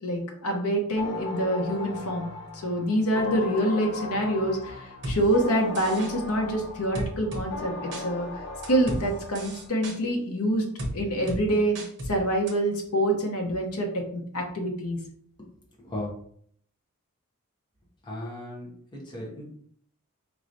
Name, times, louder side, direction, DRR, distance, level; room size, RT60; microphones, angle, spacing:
voice 1, 0.0-2.3 2.5-8.3 8.7-10.6 10.9-11.7 12.1-15.0, right 1 dB, 85° left, 1 dB, 0.8 m, -26 dB
sound 1, 1.0-9.7, left 3 dB, 55° left, 0.7 m, -37 dB
sound 2, 5.0-5.2 5.8-6.1 7.0-7.5 7.9-8.0 8.6-9.0 9.4-10.0 10.8-10.9 11.3-11.4 11.8-12.1 12.5-12.6, right 1 dB, 55° right, 1.0 m, -33 dB
voice 2, 18.0-19.5, left 1 dB, 20° left, -3 dB, 1.1 m, -37 dB
4.7 x 3.1 x 2.6 m, 0.62 s
head